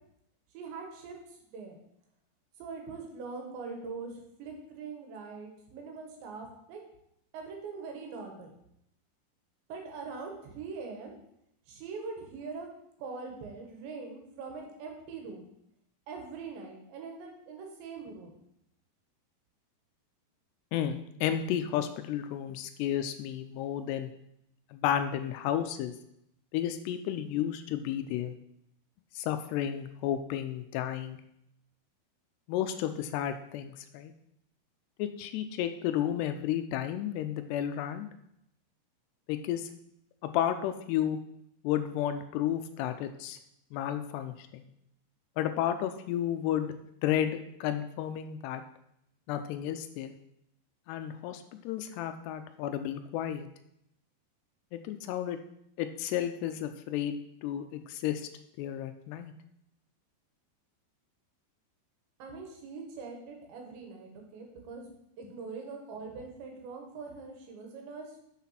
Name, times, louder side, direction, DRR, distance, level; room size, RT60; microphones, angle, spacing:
voice 1, 0.5-1.8 2.6-6.8 7.3-8.5 9.7-11.1 11.7-12.7 13.0-15.5 16.1-18.3 62.2-64.9 65.2-68.2, right 4 dB, 85° right, 2 dB, 3.8 m, -42 dB
voice 2, 20.7-24.1 24.7-25.9 26.5-28.3 29.2-31.2 32.5-34.1 35.0-38.1 39.3-39.7 40.2-41.2 41.6-43.4 43.7-44.7 45.4-46.7 47.0-48.6 49.3-50.1 50.9-53.5 54.7-55.4 55.8-57.2 57.4-58.3 58.6-59.3, left 10 dB, 85° left, 8 dB, 2.6 m, -32 dB
7.2 x 5.8 x 5.8 m, 0.76 s
omnidirectional pair, 5.0 m